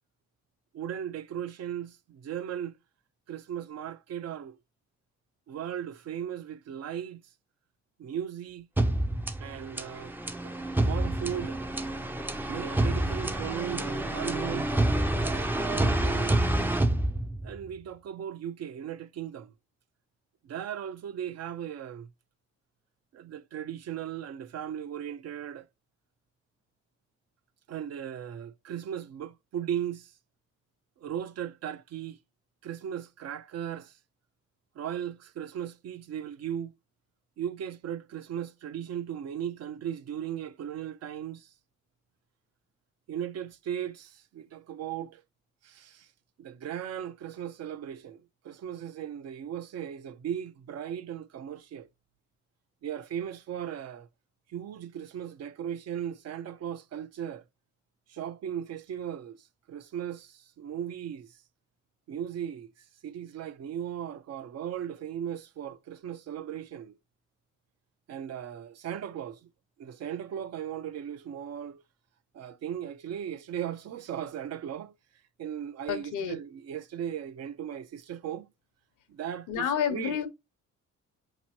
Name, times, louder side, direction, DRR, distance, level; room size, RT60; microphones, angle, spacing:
voice 1, 0.7-2.7 3.3-4.6 5.5-7.2 8.0-8.7 9.4-10.2 10.4-11.6 12.5-14.7 15.5-16.4 17.4-19.5 20.4-22.1 23.1-25.7 27.7-30.1 31.0-32.2 32.6-33.9 34.8-36.7 37.4-41.5 43.1-45.2 45.6-46.1 46.4-51.9 52.8-54.1 54.5-57.4 58.1-59.4 59.7-61.3 62.1-62.7 63.0-67.0 68.1-69.5 69.8-71.8 72.3-74.9 75.4-78.5 79.1-80.2, right 9 dB, 55° right, 0.5 m, -37 dB
sound 1, 8.8-17.7, right 1 dB, 5° right, 0.4 m, -28 dB
voice 2, 75.9-76.3 79.5-80.3, left 8 dB, 85° left, 0.8 m, -29 dB
5.1 x 3.0 x 2.8 m
cardioid pair, 90°, 30 cm